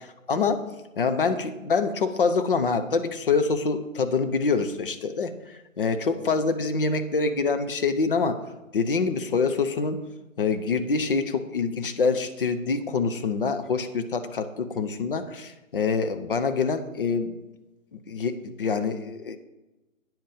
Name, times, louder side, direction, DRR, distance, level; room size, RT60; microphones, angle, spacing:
voice 1, 0.3-0.6 1.0-8.4 8.7-10.0 10.4-17.4 17.9-19.4, left 4 dB, 40° left, 8 dB, 0.8 m, -25 dB
9.2 x 7.6 x 5.0 m, 1.0 s
figure-of-eight pair, 145°, 40 cm